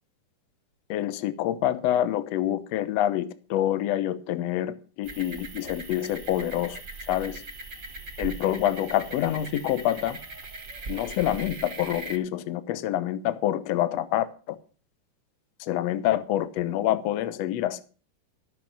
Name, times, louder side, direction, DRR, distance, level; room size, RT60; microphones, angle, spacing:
voice 1, 0.9-6.8 7.1-7.4 8.2-10.2 10.9-14.6 15.6-17.8, left 12 dB, 75° left, 13 dB, 1.5 m, -27 dB
sound 1, 5.0-12.2, right 3 dB, 45° right, 1.0 m, -40 dB
15.0 x 6.8 x 7.3 m, 0.38 s
omnidirectional pair, 4.3 m